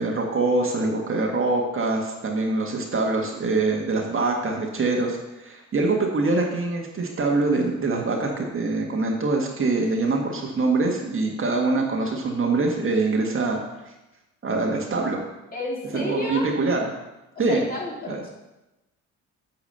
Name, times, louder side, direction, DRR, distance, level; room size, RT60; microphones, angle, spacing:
voice 1, 0.0-13.6 14.4-15.2 15.9-16.9 17.4-17.6 18.1-18.2, right 3 dB, 45° right, 1 dB, 1.7 m, -24 dB
voice 2, 15.5-16.5 17.5-18.3, left 1 dB, 30° left, -5 dB, 3.3 m, -31 dB
8.8 x 4.7 x 6.8 m, 1.0 s
cardioid pair, 90°, 30 cm